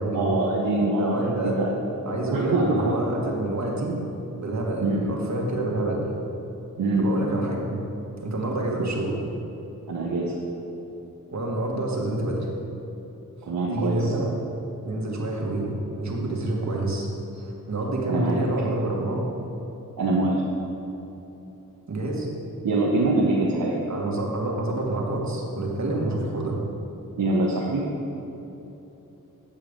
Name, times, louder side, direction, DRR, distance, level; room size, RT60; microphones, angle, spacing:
voice 1, 0.1-1.7 2.3-3.0 4.8-5.0 6.8-7.1 8.7-8.9 9.9-10.3 13.4-14.1 18.1-18.4 20.0-20.4 22.6-23.8 27.2-27.8, right 2 dB, 65° right, -4 dB, 1.1 m, -24 dB
voice 2, 1.0-1.6 2.0-4.0 4.4-6.1 7.0-7.8 8.2-9.2 11.3-12.5 13.7-14.3 14.8-17.1 17.4-19.3 21.9-22.3 23.9-26.6, right 2 dB, 50° right, -2 dB, 1.8 m, -27 dB
8.8 x 5.6 x 5.2 m, 3.0 s
cardioid pair, 50°, 37 cm